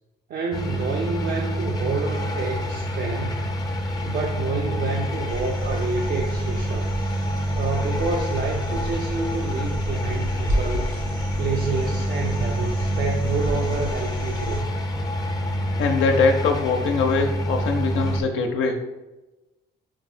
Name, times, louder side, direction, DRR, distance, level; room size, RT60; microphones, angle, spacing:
voice 1, 0.3-3.5 4.0-6.9 7.6-10.9 11.4-14.7, right 4 dB, 50° right, 0 dB, 0.4 m, -29 dB
sound 1, 0.5-18.2, equal, 20° left, 0.4 m, -27 dB
sound 2, 5.3-14.6 16.7-16.8, right 1 dB, 80° right, 1.2 m, -33 dB
voice 2, 15.8-18.8, left 4 dB, 80° left, 3 dB, 0.4 m, -22 dB
4.5 x 2.0 x 2.5 m, 1.1 s
cardioid pair, 90°, 20 cm